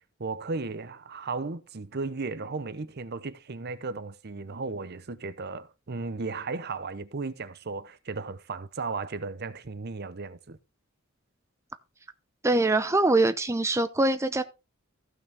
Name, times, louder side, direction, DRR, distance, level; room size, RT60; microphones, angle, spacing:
voice 1, 0.2-10.6, right 3 dB, 50° right, 0.7 m, -35 dB
voice 2, 12.4-14.4, right 2 dB, 15° right, 0.6 m, -23 dB
14.5 x 6.1 x 3.5 m
head